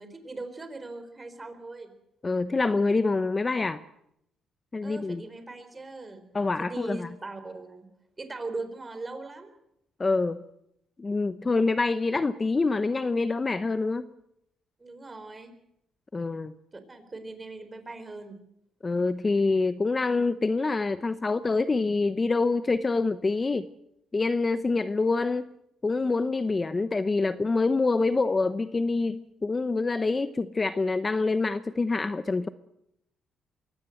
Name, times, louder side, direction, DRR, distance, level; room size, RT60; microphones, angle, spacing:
voice 1, 0.0-1.9 4.8-6.2 6.6-7.9 8.2-9.5 14.8-15.5 16.7-18.4, right 3 dB, 25° right, 4.1 m, -40 dB
voice 2, 2.2-3.8 4.7-5.2 6.3-7.1 10.0-10.4 11.0-14.1 16.1-16.5 18.8-23.7 24.1-25.5 25.8-32.5, left 3 dB, 25° left, 0.8 m, -26 dB
23.0 x 17.5 x 7.8 m
cardioid pair, 90°, 0 cm